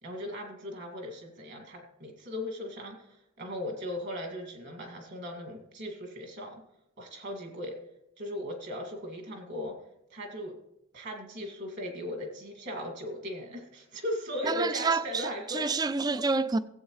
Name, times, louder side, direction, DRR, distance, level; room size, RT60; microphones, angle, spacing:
voice 1, 0.0-6.6 7.0-7.8 8.2-9.8 10.1-10.5 10.9-15.7, left 1 dB, 55° right, 2.2 m, -38 dB
voice 2, 14.4-16.6, right 4 dB, 20° right, 0.3 m, -28 dB
16.5 x 8.0 x 3.2 m
head